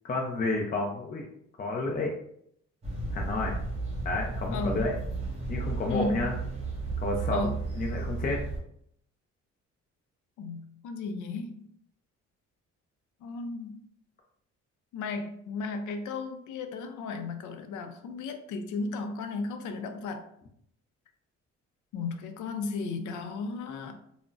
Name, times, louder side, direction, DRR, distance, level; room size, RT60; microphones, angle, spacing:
voice 1, 0.0-1.3 1.6-2.1 3.1-3.6 4.0-4.9 5.5-6.4 7.0-8.4, left 2 dB, 30° left, 0 dB, 0.5 m, -30 dB
sound 1, 2.8-8.6, right 3 dB, 20° right, 1.2 m, -33 dB
voice 2, 4.5-4.8 5.9-6.2 7.3-7.6 10.4-11.7 13.2-13.8 14.9-20.3 21.9-24.0, left 3 dB, 80° left, 7 dB, 0.5 m, -35 dB
3.5 x 2.1 x 2.5 m, 0.70 s
cardioid pair, 90°, 30 cm